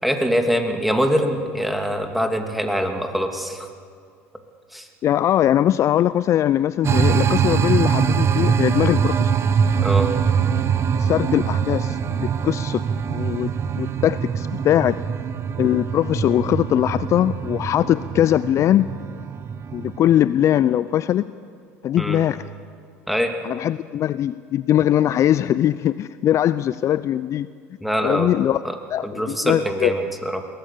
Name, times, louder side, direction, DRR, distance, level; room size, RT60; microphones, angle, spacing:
voice 1, 0.0-3.7 4.7-4.9 9.8-10.1 22.0-22.2 23.1-23.3 27.8-28.3 28.6-28.7 29.0-30.4, equal, ahead, 4 dB, 2.7 m, -23 dB
voice 2, 5.0-9.3 11.0-12.8 13.1-15.0 15.6-18.9 19.7-21.3 21.8-22.5 23.4-27.5 28.0-28.6 28.9-29.9, left 11 dB, 45° left, 17 dB, 0.5 m, -21 dB
sound 1, 6.8-20.1, right 7 dB, 35° right, 1.1 m, -23 dB
22.0 x 17.5 x 8.4 m, 2.1 s
hypercardioid pair, 70°, 7 cm